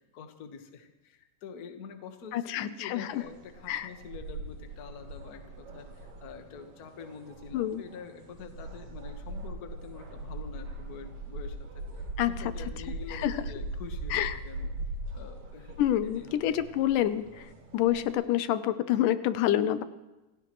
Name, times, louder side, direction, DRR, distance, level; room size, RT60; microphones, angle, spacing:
voice 1, 0.0-11.8 12.3-14.7 15.1-15.8 16.0-16.6, left 6 dB, 50° left, 6 dB, 1.1 m, -46 dB
voice 2, 2.3-3.1 3.7-3.9 7.5-7.8 12.2-12.5 13.1-13.4 14.1-14.4 15.8-17.5 17.7-19.8, left 12 dB, 85° left, 12 dB, 2.3 m, -27 dB
sound 1, 3.1-18.1, right 2 dB, 85° right, 4.2 m, -41 dB
27.5 x 16.5 x 3.1 m, 1.1 s
omnidirectional pair, 3.7 m